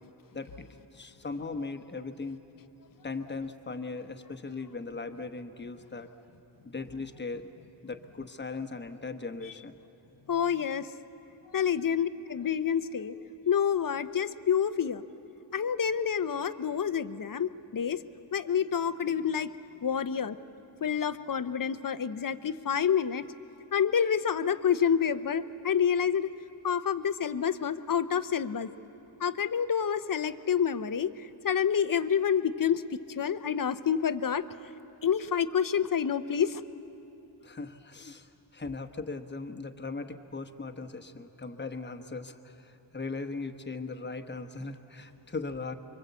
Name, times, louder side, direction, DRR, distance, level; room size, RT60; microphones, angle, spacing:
voice 1, 0.3-0.7 0.9-2.4 3.0-6.1 6.6-7.5 7.8-9.8 11.9-12.0 37.4-45.7, left 3 dB, 25° left, 6 dB, 1.1 m, -38 dB
voice 2, 10.3-10.9 11.5-13.2 13.5-15.0 15.5-18.0 18.3-19.5 19.8-20.4 20.8-23.2 23.7-26.3 26.6-28.7 29.2-34.4 35.0-36.6, left 8 dB, 45° left, 13 dB, 0.7 m, -28 dB
25.5 x 23.5 x 8.2 m, 3.0 s
wide cardioid pair, 100°, 45 cm